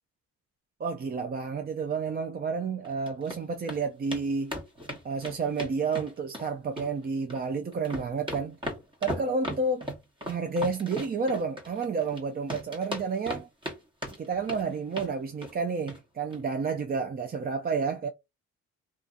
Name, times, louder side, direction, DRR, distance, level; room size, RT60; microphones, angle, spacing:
voice 1, 0.8-4.5 5.0-8.6 9.0-9.9 10.3-13.5 14.2-18.1, right 4 dB, 30° right, 0.5 m, -30 dB
sound 1, 2.8-3.4 3.7-3.8 4.1-4.2 4.5-6.5 6.8-7.4 7.7-12.2 12.5-13.8 14.0-14.6 14.9-15.1 15.4-15.6 15.9-16.0 16.3-16.4, equal, 15° right, 1.1 m, -37 dB
2.6 x 2.4 x 2.4 m
cardioid pair, 90°, 30 cm